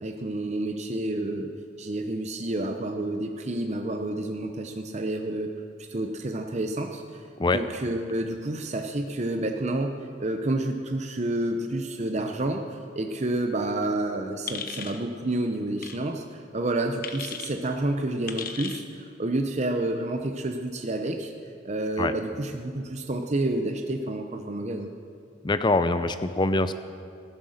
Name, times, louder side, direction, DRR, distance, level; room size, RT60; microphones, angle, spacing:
voice 1, 0.0-1.5 1.8-5.5 5.8-7.2 7.5-12.6 12.9-21.3 21.6-24.9, right 1 dB, 35° right, 4 dB, 0.7 m, -29 dB
sound 1, 14.5-15.0 15.8-16.0 17.0-17.5 18.3-18.8, left 7 dB, 45° left, 0.9 m, -36 dB
voice 2, 25.4-26.7, left 2 dB, 20° left, 11 dB, 0.5 m, -23 dB
15.0 x 12.5 x 6.5 m, 2.4 s
head